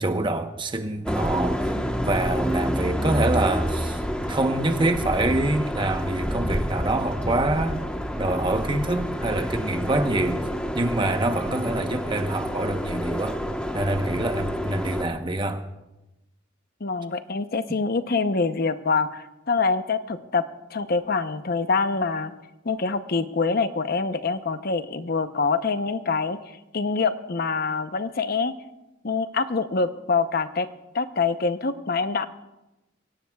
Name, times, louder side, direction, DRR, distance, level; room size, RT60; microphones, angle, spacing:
voice 1, 0.0-1.8 2.1-7.8 8.2-10.5 10.7-13.4 13.7-15.6, right 2 dB, 25° right, 1.0 m, -26 dB
sound 1, 1.1-15.0, equal, 5° left, 1.1 m, -28 dB
voice 2, 16.8-20.4 20.7-22.3 22.6-26.4 26.7-28.5 29.0-30.7 30.9-32.3, left 4 dB, 50° left, 0.8 m, -25 dB
24.5 x 17.0 x 2.3 m
head